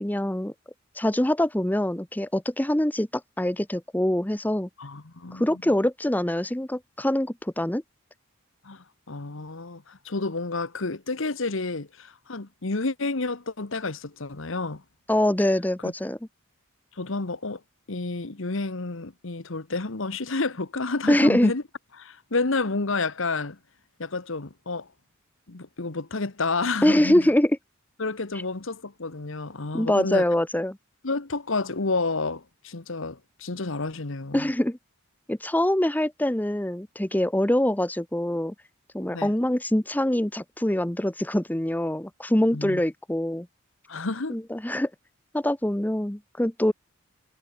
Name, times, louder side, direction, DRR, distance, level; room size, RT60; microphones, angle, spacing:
voice 1, 0.0-0.5 1.0-3.1 3.4-4.7 5.3-7.8 15.1-16.2 21.1-21.5 26.8-27.6 29.7-30.8 34.3-34.8 35.3-38.5 38.9-43.5 44.3-44.9 45.3-46.7, left 1 dB, 10° left, 0.8 m, -24 dB
voice 2, 4.8-5.7 8.6-14.8 15.8-15.9 17.0-17.6 17.9-21.6 22.0-23.6 24.0-24.9 25.5-27.3 28.0-30.2 31.0-34.5 39.1-39.3 42.5-42.8 43.9-44.4, left 3 dB, 65° left, 1.3 m, -30 dB
head